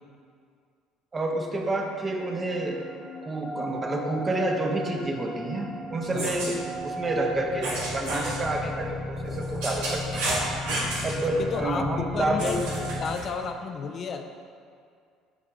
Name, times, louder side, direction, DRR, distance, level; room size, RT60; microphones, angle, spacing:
voice 1, 1.1-2.8 3.2-10.3 11.0-12.7, right 2 dB, 30° right, 1 dB, 1.0 m, -29 dB
sound 1, 1.9-13.2, left 1 dB, 10° right, 0.7 m, -36 dB
sound 2, 6.0-6.5 7.6-8.4 9.2-11.2 12.4-13.2, right 2 dB, 75° right, 1.4 m, -31 dB
voice 2, 11.4-14.2, left 5 dB, 45° left, 5 dB, 0.5 m, -32 dB
8.2 x 4.7 x 3.5 m, 2.2 s
hypercardioid pair, 60°, 0 cm